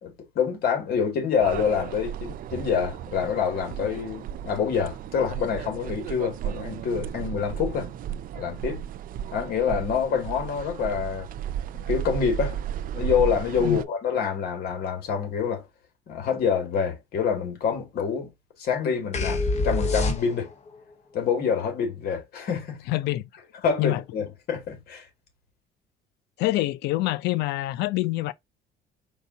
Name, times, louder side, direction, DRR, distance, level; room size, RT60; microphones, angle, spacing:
voice 1, 0.0-7.9 8.3-8.8 9.3-11.3 11.7-12.6 12.9-15.6 16.1-18.3 18.6-20.5 21.1-22.8 23.6-25.1, left 6 dB, 65° left, 2.1 m, -26 dB
sound 1, 1.4-13.8, right 10 dB, 55° right, 0.4 m, -34 dB
sound 2, 19.1-20.7, left 2 dB, 40° left, 1.4 m, -25 dB
voice 2, 22.9-23.3 23.8-24.0 26.4-28.3, left 18 dB, 85° left, 0.4 m, -26 dB
4.6 x 2.7 x 3.9 m
cardioid pair, 110°, 17 cm